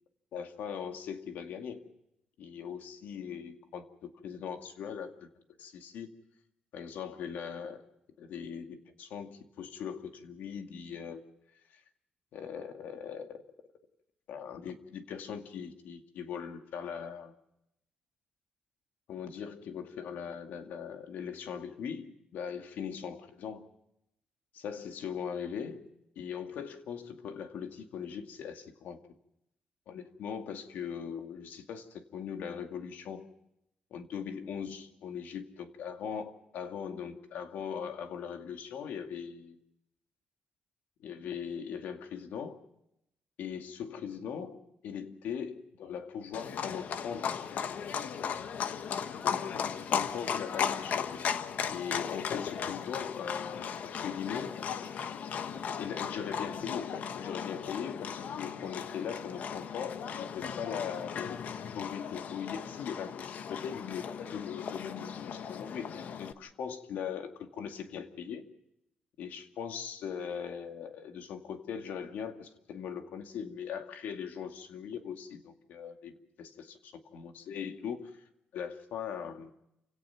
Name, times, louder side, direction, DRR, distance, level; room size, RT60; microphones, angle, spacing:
voice 1, 0.3-1.8 2.4-5.3 5.6-6.1 6.7-7.8 8.2-11.2 12.3-13.4 14.3-17.3 19.1-23.7 24.5-25.9 26.2-29.0 29.9-33.3 33.9-39.6 41.0-42.6 43.4-47.4 49.2-51.2 51.7-54.5 55.8-61.4 61.7-63.2 63.5-68.4 69.2-76.1 76.4-78.2 78.5-79.5, left 7 dB, 85° left, 5 dB, 2.3 m, -40 dB
Livestock farm animals working animals, 46.3-66.3, left 7 dB, 65° left, 1.3 m, -36 dB
28.5 x 17.0 x 5.9 m, 0.81 s
cardioid pair, 115°, 3 cm